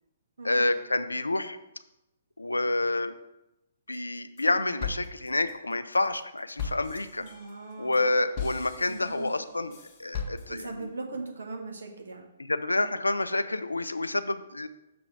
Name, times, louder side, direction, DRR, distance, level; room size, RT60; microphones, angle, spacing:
voice 1, 0.4-1.6 2.4-3.1 3.9-7.2 7.8-10.7 12.5-14.7, left 2 dB, 80° left, 12 dB, 0.4 m, -28 dB
sound 1, 3.9-4.5 4.8-10.8, left 5 dB, 30° left, 1.4 m, -39 dB
voice 2, 7.2-8.2 8.9-9.3 10.5-12.3, right 3 dB, 65° right, 2 dB, 1.3 m, -39 dB
6.7 x 3.8 x 6.0 m, 0.92 s
figure-of-eight pair, 125°, 0 cm